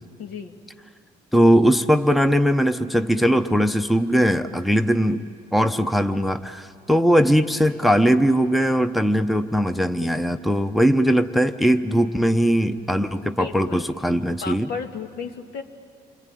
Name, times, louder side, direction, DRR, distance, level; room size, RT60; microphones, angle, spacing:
voice 1, 0.2-0.5 13.2-13.9 14.4-15.6, left 6 dB, 70° left, 5 dB, 2.1 m, -33 dB
voice 2, 1.3-5.2 5.5-14.7, equal, ahead, 9 dB, 0.8 m, -20 dB
29.0 x 22.5 x 9.2 m, 2.2 s
cardioid pair, 110°, 17 cm